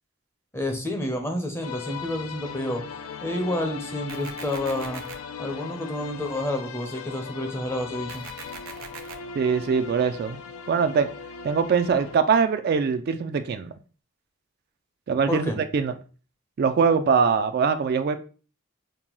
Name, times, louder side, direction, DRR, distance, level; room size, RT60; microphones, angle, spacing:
voice 1, 0.5-2.8 3.2-5.0 5.4-8.3 15.3-15.6, left 1 dB, 10° left, 0.6 m, -29 dB
sound 1, 1.6-12.2, left 5 dB, 70° left, 0.3 m, -38 dB
sound 2, 4.1-5.1 8.1-9.1, right 6 dB, 85° right, 0.6 m, -41 dB
voice 2, 9.4-10.4 10.7-11.1 11.4-13.7 15.1-15.9 16.6-18.2, right 5 dB, 50° right, 0.3 m, -22 dB
5.3 x 2.2 x 3.0 m
head